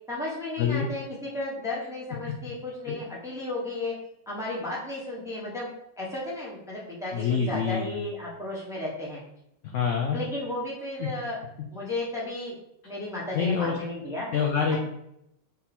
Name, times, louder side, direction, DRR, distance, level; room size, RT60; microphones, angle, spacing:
voice 1, 0.1-4.0 4.3-5.7 6.0-9.2 10.1-11.4 11.7-12.6 12.8-14.3, left 2 dB, 5° right, -5 dB, 0.7 m, -34 dB
voice 2, 0.6-0.9 2.9-3.0 7.1-7.9 9.6-10.2 11.0-11.1 13.3-13.8 14.3-14.8, left 6 dB, 80° left, 1 dB, 0.6 m, -26 dB
3.7 x 2.7 x 4.2 m, 0.81 s
omnidirectional pair, 1.9 m